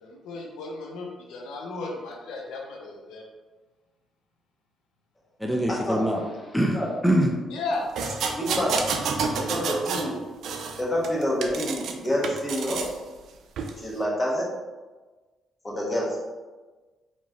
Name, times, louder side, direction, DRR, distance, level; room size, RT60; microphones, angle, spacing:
voice 1, 0.0-3.2 6.0-6.1 7.5-7.9, left 3 dB, 90° left, 0 dB, 0.7 m, -34 dB
voice 2, 5.4-6.2 6.5-7.4, right 1 dB, 5° left, -1 dB, 0.5 m, -23 dB
sound 1, 8.0-10.1 10.4-11.9 12.2-12.9 13.6-13.7, right 5 dB, 75° right, 0.4 m, -29 dB
voice 3, 8.4-8.7 9.4-10.1 10.8-12.8 13.8-14.5 15.6-16.2, equal, 20° left, -4 dB, 1.3 m, -27 dB
4.4 x 3.0 x 2.9 m, 1.3 s
cardioid pair, 90°, 0 cm